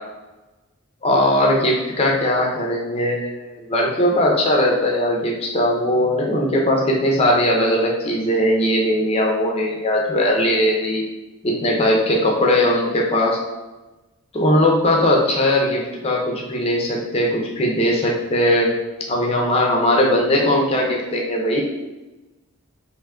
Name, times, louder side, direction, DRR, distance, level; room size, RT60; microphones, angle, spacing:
voice 1, 1.0-11.0 11.4-13.4 14.3-18.8 19.1-21.6, left 1 dB, 25° left, -1 dB, 0.4 m, -19 dB
3.5 x 2.9 x 2.2 m, 1.1 s
head